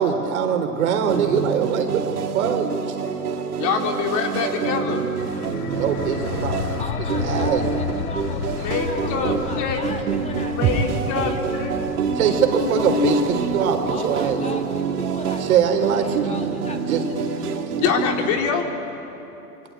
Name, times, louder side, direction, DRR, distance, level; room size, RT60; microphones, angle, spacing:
voice 1, 0.0-3.0 5.8-6.8 7.2-7.7 12.2-14.7 15.5-16.3 16.8-17.1, right 7 dB, 65° right, 5 dB, 4.0 m, -22 dB
sound 1, 1.1-18.5, right 6 dB, 80° right, 2.7 m, -27 dB
voice 2, 3.6-5.1 8.6-9.8 10.5-11.7 12.1-13.5 17.8-18.7, left 6 dB, 40° left, 3 dB, 3.8 m, -25 dB
sound 2, 5.2-16.7, left 9 dB, 75° left, 1.1 m, -33 dB
voice 3, 6.8-11.4 13.9-17.6, left 2 dB, 15° left, 3 dB, 3.1 m, -37 dB
sound 3, 10.6-14.6 14.9-15.0, right 6 dB, 35° right, 3.8 m, -30 dB
27.0 x 25.0 x 8.6 m, 3.0 s
hypercardioid pair, 110°, 45 cm